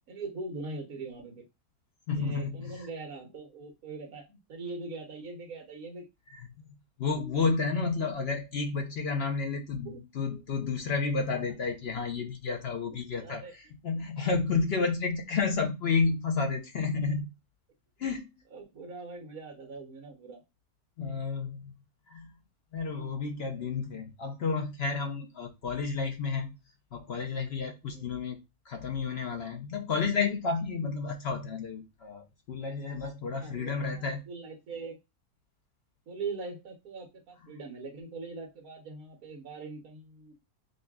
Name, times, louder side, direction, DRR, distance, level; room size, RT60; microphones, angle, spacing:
voice 1, 0.1-1.4 2.1-6.1 9.8-10.0 13.2-13.5 18.5-20.4 27.8-28.2 33.3-35.0 36.1-40.4, right 3 dB, 65° right, 1 dB, 1.4 m, -41 dB
voice 2, 2.1-2.9 6.3-6.5 7.0-17.3 18.0-18.3 21.0-21.7 22.1-22.3 22.7-26.6 26.9-28.4 28.7-34.2, left 4 dB, 55° left, 4 dB, 0.7 m, -31 dB
6.3 x 2.3 x 2.3 m, 0.23 s
omnidirectional pair, 1.7 m